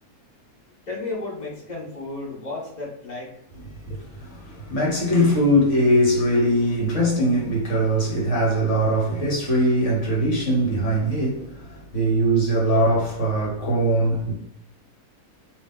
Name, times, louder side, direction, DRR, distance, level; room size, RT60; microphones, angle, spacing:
voice 1, 0.9-3.3, left 3 dB, 30° left, 1.0 m, -33 dB
voice 2, 3.9-14.3, equal, 50° left, 1.3 m, -21 dB
2.9 x 2.7 x 3.5 m
omnidirectional pair, 1.7 m